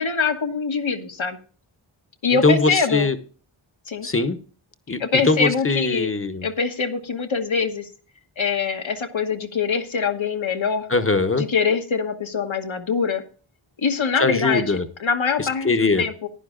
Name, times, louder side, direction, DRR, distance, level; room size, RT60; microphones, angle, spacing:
voice 1, 0.0-1.4 2.2-3.1 3.9-4.1 4.9-6.1 6.4-7.9 8.4-10.9 11.4-13.2 13.8-16.3, left 5 dB, 70° left, 6 dB, 1.2 m, -24 dB
voice 2, 2.4-3.2 4.0-4.4 4.9-5.0 5.3-6.5 10.9-11.4 14.2-14.8 15.4-16.0, left 3 dB, 25° left, 10 dB, 0.9 m, -21 dB
15.0 x 10.5 x 2.5 m, 0.40 s
wide cardioid pair, 60°, 49 cm